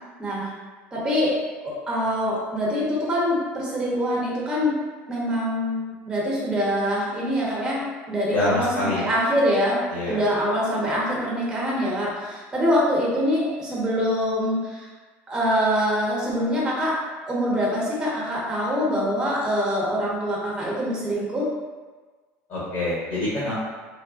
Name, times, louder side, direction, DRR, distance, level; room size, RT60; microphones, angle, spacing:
voice 1, 0.2-0.5 0.9-1.4 1.6-4.8 5.1-14.9 15.3-17.0 17.3-21.5, equal, 15° right, -6 dB, 0.8 m, -24 dB
voice 2, 8.3-9.1 9.9-10.2 22.5-23.6, left 2 dB, 45° left, -8 dB, 0.8 m, -26 dB
3.1 x 2.0 x 2.4 m, 1.4 s
cardioid pair, 135°, 5 cm